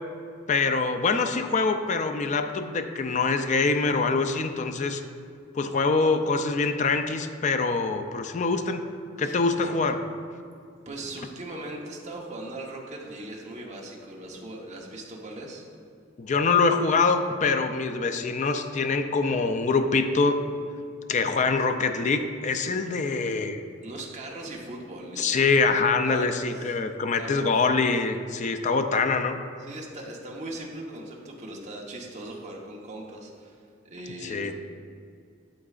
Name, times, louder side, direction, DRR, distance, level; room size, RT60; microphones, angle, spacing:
voice 1, 0.5-5.0 5.6-8.8 9.2-10.0 16.2-20.4 21.1-23.6 25.2-29.4 34.2-34.5, left 4 dB, 40° left, 7 dB, 0.4 m, -24 dB
voice 2, 10.8-15.6 23.8-25.5 26.0-26.8 27.2-27.6 29.6-33.6 33.8-34.6, right 1 dB, 40° right, -1 dB, 1.0 m, -39 dB
8.5 x 7.7 x 2.4 m, 2.4 s
head